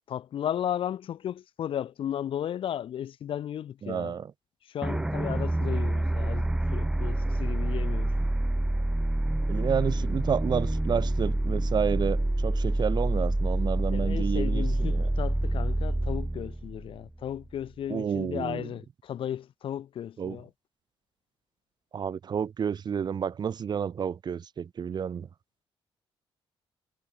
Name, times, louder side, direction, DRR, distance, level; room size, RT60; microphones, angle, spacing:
voice 1, 0.1-4.2 4.7-8.1 13.9-20.5, left 10 dB, 65° left, 3.3 m, -35 dB
voice 2, 3.8-4.3 9.5-15.1 17.9-18.7 20.2-20.4 21.9-25.3, right 7 dB, 50° right, 5.1 m, -30 dB
sound 1, 4.8-17.5, right 1 dB, 5° right, 0.6 m, -27 dB
cardioid pair, 125°, 10 cm